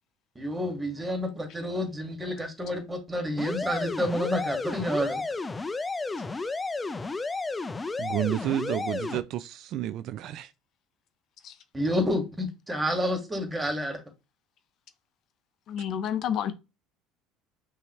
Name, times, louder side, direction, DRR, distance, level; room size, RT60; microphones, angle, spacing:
voice 1, 0.4-5.2 11.7-14.0, equal, 15° right, 2.0 m, -29 dB
sound 1, 3.4-9.2, left 3 dB, 20° left, 0.5 m, -32 dB
voice 2, 8.0-10.5, right 13 dB, 60° right, 0.4 m, -31 dB
voice 3, 15.7-16.5, left 9 dB, 55° left, 0.7 m, -29 dB
5.6 x 2.7 x 3.1 m
supercardioid pair, 90°, 0 cm